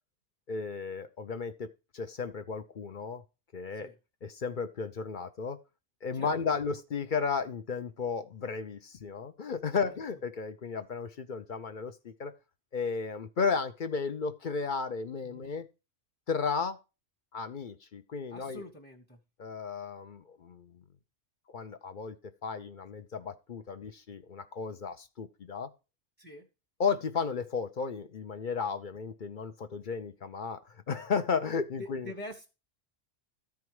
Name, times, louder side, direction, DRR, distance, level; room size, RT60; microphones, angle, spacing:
voice 1, 0.5-3.2 3.5-3.9 4.2-5.6 6.0-12.3 12.7-15.7 16.3-16.8 17.3-18.6 19.4-20.8 21.5-22.2 22.4-25.7 26.8-32.1, left 5 dB, 50° left, 10 dB, 0.7 m, -34 dB
voice 2, 18.3-19.2 26.2-26.4 31.8-32.5, left 1 dB, 10° left, -1 dB, 1.0 m, -45 dB
13.0 x 4.7 x 4.7 m, 0.29 s
omnidirectional pair, 1.2 m